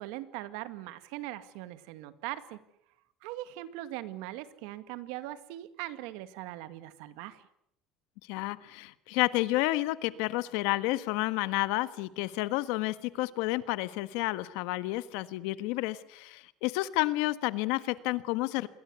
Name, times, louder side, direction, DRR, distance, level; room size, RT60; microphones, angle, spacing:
voice 1, 0.0-2.6 3.2-7.5, right 15 dB, 90° right, 12 dB, 2.0 m, -40 dB
voice 2, 8.3-18.7, left 18 dB, 90° left, 13 dB, 1.4 m, -30 dB
27.5 x 21.5 x 8.3 m, 0.74 s
cardioid pair, 170°, 0 cm